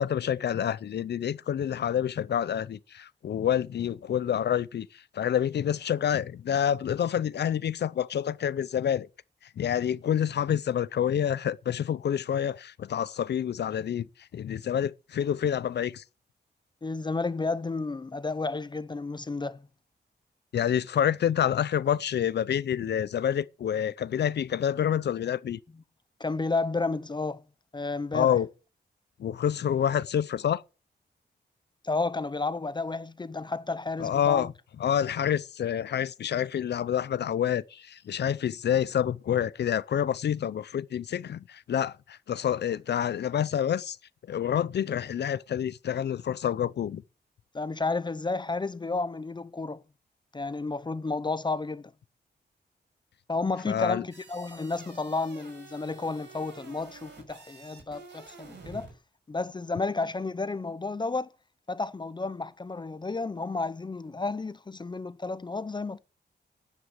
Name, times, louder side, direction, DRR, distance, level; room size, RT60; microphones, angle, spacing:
voice 1, 0.0-9.1 9.6-14.1 14.3-16.0 20.5-25.6 28.1-28.5 29.2-30.6 34.0-34.5 34.8-44.0 44.3-47.0 53.7-54.0, left 9 dB, 70° left, 0.6 m, -28 dB
voice 2, 16.8-19.7 26.2-27.4 27.7-28.4 31.8-34.5 47.5-49.8 50.3-51.9 53.3-58.9 59.3-61.3 61.7-66.0, left 3 dB, 25° left, 0.7 m, -32 dB
sound 1, 54.1-58.9, right 4 dB, 80° right, 5.7 m, -49 dB
11.0 x 9.6 x 8.2 m
wide cardioid pair, 120°, 18 cm